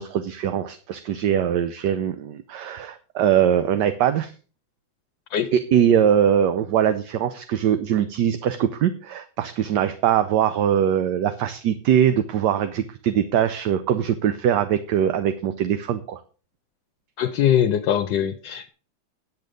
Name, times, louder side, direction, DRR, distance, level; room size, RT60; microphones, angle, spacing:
voice 1, 0.0-4.3 5.5-16.2, right 9 dB, 70° right, 10 dB, 1.3 m, -22 dB
voice 2, 17.2-18.7, left 10 dB, 75° left, 6 dB, 1.4 m, -22 dB
9.3 x 8.2 x 5.2 m, 0.37 s
omnidirectional pair, 2.1 m